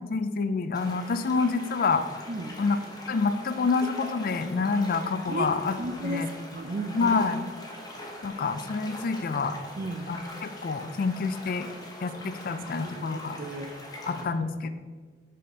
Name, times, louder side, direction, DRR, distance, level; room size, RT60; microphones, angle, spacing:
voice 1, 0.1-2.0 2.6-2.8 3.1-6.3 6.9-7.5 8.2-9.6 10.1-11.7 12.0-13.4 14.1-14.8, left 4 dB, 55° left, 11 dB, 0.4 m, -27 dB
sound 1, 0.7-14.2, left 1 dB, 20° left, 1.0 m, -42 dB
voice 2, 5.8-6.3 6.5-7.2 9.8-10.1 13.0-13.7 14.1-14.2, right 2 dB, 50° right, 8 dB, 0.5 m, -34 dB
5.5 x 4.2 x 5.0 m, 1.5 s
head